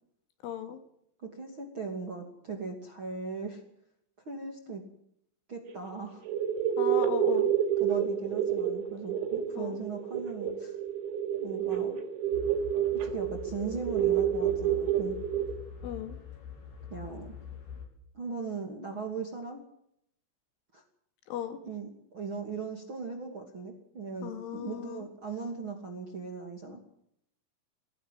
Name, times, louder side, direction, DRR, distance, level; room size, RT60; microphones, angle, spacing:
voice 1, 0.4-0.8 6.8-7.5 9.6-9.8 15.8-16.2 21.3-21.6 24.2-25.1, left 10 dB, 70° left, 8 dB, 4.5 m, -37 dB
voice 2, 1.2-3.6 4.3-4.8 5.5-6.2 7.8-10.8 11.4-12.0 13.0-15.1 16.9-17.3 18.1-19.6 20.7-20.8 21.6-26.8, right 4 dB, 35° right, 3 dB, 2.4 m, -38 dB
sound 1, 5.7-5.9 6.3-15.6, right 9 dB, 85° right, 5.7 m, -29 dB
sound 2, 12.3-17.9, left 6 dB, 45° left, 5.0 m, -44 dB
22.5 x 17.5 x 7.8 m, 0.73 s
omnidirectional pair, 6.0 m